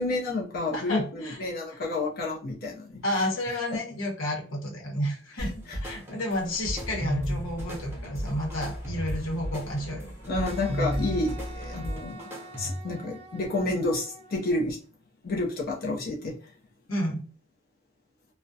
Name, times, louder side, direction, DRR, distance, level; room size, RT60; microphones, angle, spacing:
voice 1, 0.0-3.3 5.4-5.8 10.2-12.2 12.6-14.8 15.2-16.4, left 2 dB, 50° left, -1 dB, 0.5 m, -30 dB
voice 2, 0.7-1.4 3.0-5.5 5.8-10.1 16.9-17.2, left 1 dB, 80° left, -1 dB, 0.9 m, -31 dB
sound 1, 5.4-13.0, equal, 10° right, 0.8 m, -34 dB
sound 2, 6.3-11.9, equal, 30° left, 0.9 m, -39 dB
Wind instrument woodwind instrument, 10.4-14.6, right 2 dB, 30° right, 0.3 m, -47 dB
2.3 x 2.1 x 2.6 m, 0.41 s
head